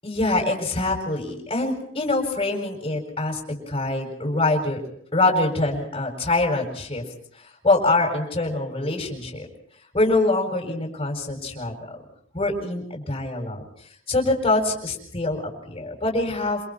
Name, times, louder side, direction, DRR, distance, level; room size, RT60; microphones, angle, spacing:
voice 1, 0.0-4.8 5.1-7.0 7.6-9.5 9.9-12.0 12.3-13.6 14.1-16.6, left 2 dB, 25° left, 0 dB, 7.3 m, -24 dB
28.5 x 27.5 x 4.5 m, 0.63 s
head